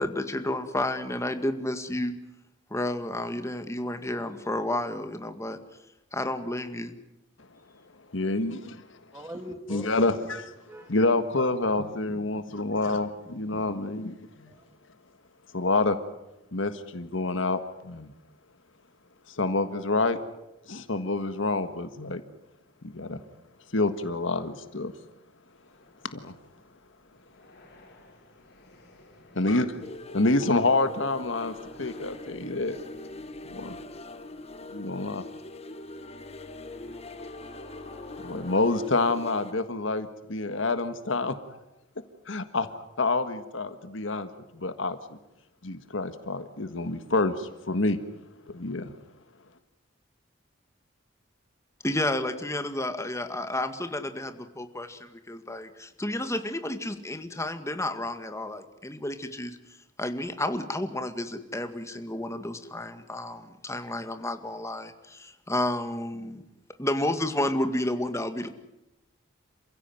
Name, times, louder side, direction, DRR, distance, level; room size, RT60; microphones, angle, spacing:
voice 1, 0.0-2.1 2.7-5.6 6.1-7.0 51.8-59.6 60.0-66.4 66.8-68.5, left 1 dB, 15° left, 8 dB, 2.0 m, -31 dB
voice 2, 8.1-8.8 9.7-10.5 10.9-14.5 15.5-16.0 16.5-18.1 19.3-20.2 20.7-22.2 22.8-23.2 23.7-24.9 26.1-26.3 29.3-29.9 30.1-32.8 33.5-33.8 34.7-35.2 38.2-41.6 42.3-45.0 45.6-48.0 48.5-48.9, left 2 dB, 75° left, 10 dB, 1.6 m, -27 dB
voice 3, 9.1-9.9 10.2-11.3 11.6-13.8 14.5-14.8, equal, 15° right, 5 dB, 2.0 m, -45 dB
sound 1, 25.5-38.6, left 2 dB, 60° left, 6.2 m, -53 dB
sound 2, 29.8-39.5, left 2 dB, 35° left, 1.3 m, -42 dB
28.0 x 16.0 x 9.4 m, 0.91 s
head